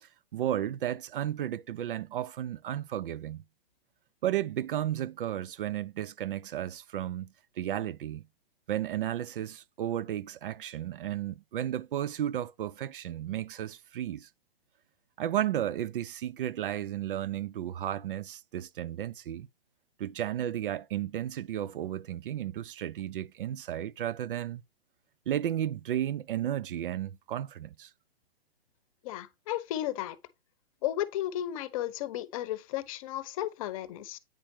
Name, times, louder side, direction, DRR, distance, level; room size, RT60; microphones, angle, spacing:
voice 1, 0.0-3.4 4.2-8.2 8.7-14.3 15.2-19.5 20.0-24.6 25.3-27.9, right 11 dB, 60° right, 0.5 m, -33 dB
voice 2, 29.0-30.2 30.8-34.2, left 13 dB, 35° left, 0.8 m, -34 dB
9.0 x 5.8 x 3.1 m
hypercardioid pair, 135°, 30 cm